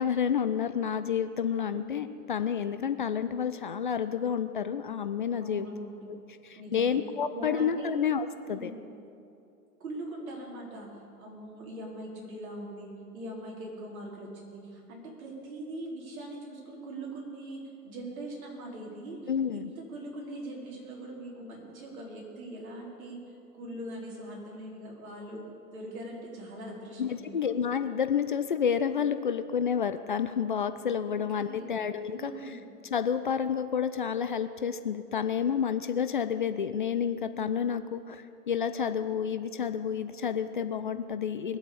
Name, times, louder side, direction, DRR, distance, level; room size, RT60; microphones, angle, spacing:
voice 1, 0.0-5.7 6.1-6.2 6.4-8.7 19.3-19.7 27.0-32.6 32.9-41.6, left 7 dB, 35° left, 10 dB, 0.4 m, -30 dB
voice 2, 5.4-6.2 6.5-7.0 7.3-7.9 8.5-9.0 9.8-10.9 11.2-23.2 23.5-25.4 25.7-27.6 31.1-31.8 32.1-32.6, right 1 dB, 55° right, -3 dB, 4.5 m, -41 dB
21.0 x 8.0 x 6.9 m, 2.6 s
figure-of-eight pair, 115°, 49 cm